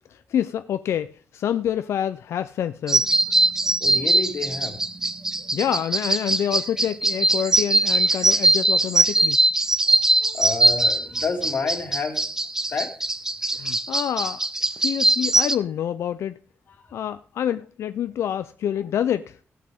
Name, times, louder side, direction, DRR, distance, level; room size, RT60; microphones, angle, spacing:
voice 1, 0.1-3.1 5.5-9.4 13.5-14.4 14.7-16.4 16.9-19.4, left 10 dB, 90° left, 0.4 m, -27 dB
sound 1, 2.9-15.6, right 2 dB, 10° right, 0.5 m, -21 dB
voice 2, 3.8-4.8 8.2-8.4 9.9-12.2 12.7-12.9, left 5 dB, 50° left, 2.1 m, -29 dB
16.5 x 8.4 x 3.5 m
wide cardioid pair, 175°, 5 cm